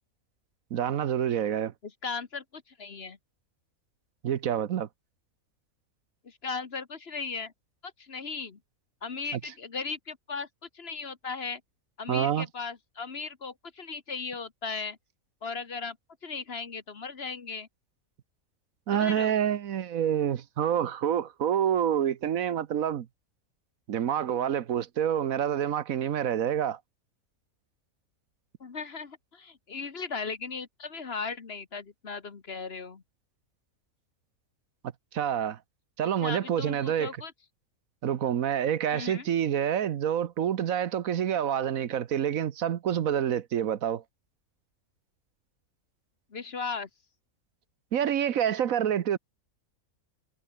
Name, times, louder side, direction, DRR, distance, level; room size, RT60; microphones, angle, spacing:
voice 1, 0.7-1.7 4.2-4.9 12.1-12.5 18.9-23.1 23.9-26.8 35.1-35.6 36.0-37.1 38.0-44.0 47.9-49.2, right 9 dB, 70° right, 1.3 m, -27 dB
voice 2, 1.8-3.2 6.2-7.5 7.8-8.6 9.0-10.5 10.7-11.6 12.0-15.0 15.4-16.0 16.2-17.7 18.9-19.4 28.6-33.0 36.2-37.3 38.9-39.3 46.3-46.9, left 5 dB, 45° left, 1.6 m, -37 dB
omnidirectional pair, 1.5 m